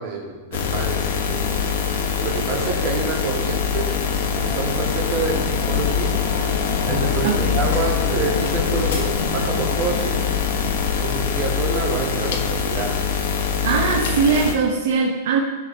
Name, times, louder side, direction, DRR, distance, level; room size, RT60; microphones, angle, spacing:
voice 1, 0.0-4.0 4.3-6.2 6.8-10.3 11.0-13.0, right 4 dB, 45° right, -2 dB, 2.9 m, -28 dB
sound 1, 0.5-14.5, left 6 dB, 70° left, 1.5 m, -23 dB
sound 2, 4.2-10.9, equal, 35° left, 2.2 m, -41 dB
voice 2, 7.2-7.6 13.6-15.4, right 5 dB, 70° right, 1 dB, 1.2 m, -20 dB
sound 3, 8.4-8.6 8.9-9.1 10.0-10.4, left 3 dB, 90° left, 3.8 m, -40 dB
15.5 x 6.1 x 4.4 m, 1.4 s
supercardioid pair, 150°, 0 cm